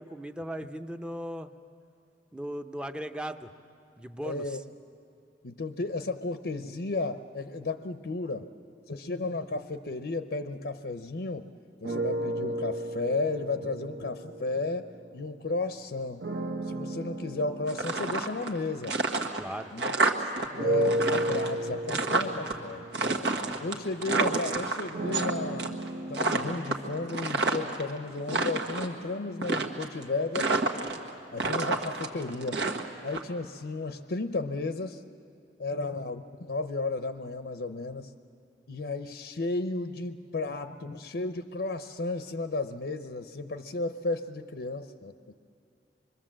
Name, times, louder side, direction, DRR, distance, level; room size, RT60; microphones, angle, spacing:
voice 1, 0.0-1.5 2.3-3.5 4.0-4.4 19.4-19.7, equal, 5° right, 8 dB, 0.7 m, -37 dB
voice 2, 4.2-4.6 5.4-8.5 8.9-11.5 11.8-14.9 15.1-16.3 16.7-19.0 19.7-20.0 20.5-22.8 23.6-25.8 26.1-30.5 31.3-32.6 33.0-35.0 35.6-38.1 38.7-45.2, left 3 dB, 70° left, 9 dB, 0.7 m, -33 dB
sound 1, 11.8-15.4 16.2-20.0 20.6-28.5, right 1 dB, 60° right, 1.2 m, -35 dB
sound 2, 17.7-18.6 18.8-20.5 20.7-22.5 22.9-25.3 25.6-25.9 26.1-27.8 28.2-28.9 29.4-30.0 30.3-31.1 31.4-33.2, right 3 dB, 80° right, 1.6 m, -29 dB
25.5 x 23.0 x 7.5 m, 2.5 s
head